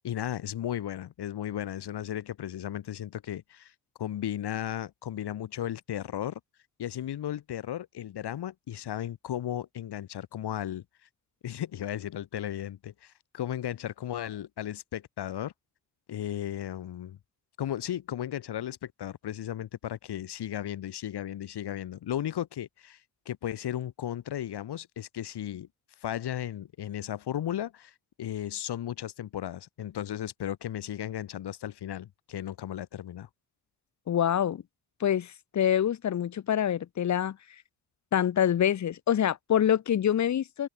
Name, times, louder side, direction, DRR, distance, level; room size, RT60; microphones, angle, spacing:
voice 1, 0.0-3.7 4.0-6.4 6.8-10.8 11.4-15.5 16.1-17.2 17.6-23.0 23.3-25.7 26.0-33.3, left 11 dB, 80° left, 2.0 m, -35 dB
voice 2, 34.1-34.6 35.0-37.4 38.1-40.7, left 10 dB, 45° left, 0.7 m, -26 dB
cardioid pair, 65°, 39 cm